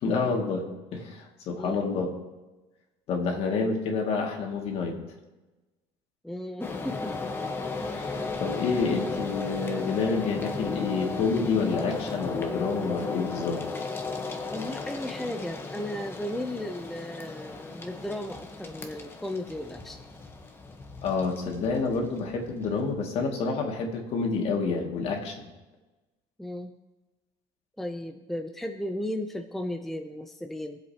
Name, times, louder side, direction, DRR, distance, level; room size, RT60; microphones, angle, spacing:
voice 1, 0.0-2.1 3.1-5.0 7.9-13.6 21.0-25.5, left 4 dB, 55° left, 1 dB, 2.3 m, -28 dB
voice 2, 1.5-2.0 6.2-7.3 14.5-20.0 26.4-26.7 27.8-30.8, left 1 dB, ahead, 4 dB, 0.6 m, -35 dB
sound 1, 6.6-23.4, left 4 dB, 20° left, 1.1 m, -35 dB
22.5 x 7.8 x 2.9 m, 1.1 s
cardioid pair, 140°, 12 cm